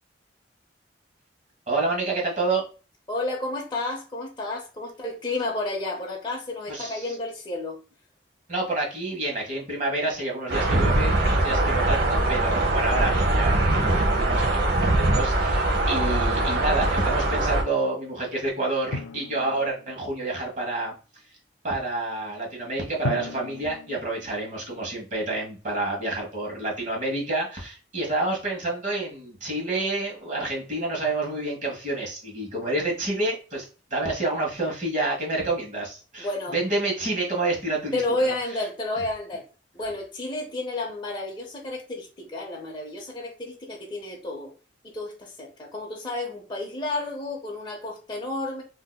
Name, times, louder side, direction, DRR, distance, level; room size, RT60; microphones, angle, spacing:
voice 1, 1.7-2.6 6.7-7.1 8.5-14.5 14.8-20.9 21.6-38.3, right 2 dB, 40° right, 1.3 m, -28 dB
voice 2, 3.1-7.8 36.2-36.5 37.9-39.5 39.7-44.5 44.8-48.6, left 2 dB, 25° left, 0.7 m, -31 dB
sound 1, 10.5-17.6, right 2 dB, 60° right, 0.9 m, -22 dB
Drum, 18.9-20.4 23.0-25.2, left 3 dB, 75° left, 0.4 m, -36 dB
3.7 x 2.8 x 2.2 m
head